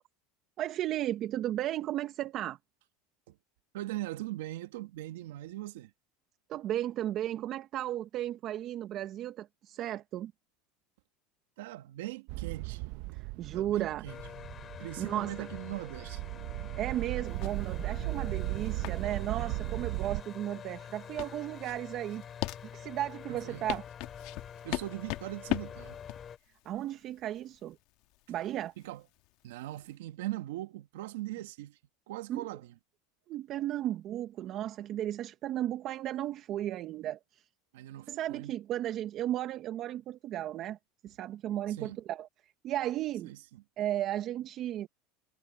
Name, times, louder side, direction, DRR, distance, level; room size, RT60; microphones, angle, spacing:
voice 1, 0.6-2.6 6.5-10.3 13.1-14.0 15.0-15.5 16.8-22.2 22.7-23.8 26.6-27.8 28.3-28.7 32.3-32.5 33.3-37.5 38.1-40.8 41.0-42.3 42.6-43.3 43.8-44.9, right 12 dB, 45° right, 0.9 m, -34 dB
voice 2, 3.7-5.9 11.6-12.8 13.1-13.2 13.5-14.2 14.8-16.2 23.3-23.7 24.6-26.0 28.8-29.0 29.4-31.8 32.1-32.7 37.7-38.5 41.7-42.0 43.2-43.6, right 16 dB, 85° right, 1.4 m, -40 dB
sound 1, 12.3-20.2, right 22 dB, 65° right, 0.7 m, -37 dB
sound 2, 14.1-26.4, left 8 dB, 30° left, 2.9 m, -47 dB
sound 3, 17.2-29.9, left 20 dB, 60° left, 1.5 m, -40 dB
supercardioid pair, 130°, 0 cm